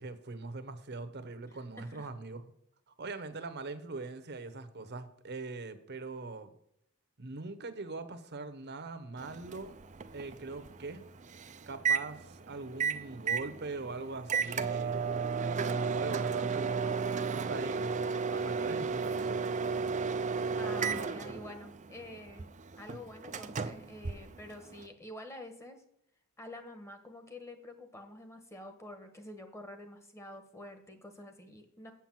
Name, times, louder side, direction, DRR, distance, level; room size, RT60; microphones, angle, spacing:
voice 1, 0.0-2.5 2.9-6.5 7.2-9.8 10.1-11.0 11.7-19.4, right 3 dB, 50° right, 11 dB, 1.0 m, -42 dB
voice 2, 1.5-2.1 20.5-22.5 22.7-25.8 26.4-31.9, left 1 dB, 15° left, 6 dB, 1.3 m, -48 dB
Microwave oven, 9.2-24.9, right 5 dB, 35° right, 0.5 m, -34 dB
8.1 x 5.9 x 7.5 m, 0.76 s
head